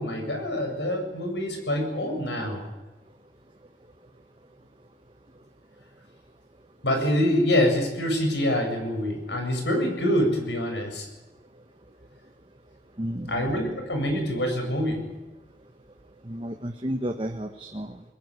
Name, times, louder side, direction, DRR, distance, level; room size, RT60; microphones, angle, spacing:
voice 1, 0.0-2.6 6.8-11.1 13.3-15.1, left 1 dB, 80° left, 4 dB, 7.6 m, -25 dB
voice 2, 13.0-13.5 16.2-18.0, equal, 30° right, 4 dB, 1.3 m, -32 dB
23.0 x 21.0 x 9.9 m, 1.2 s
head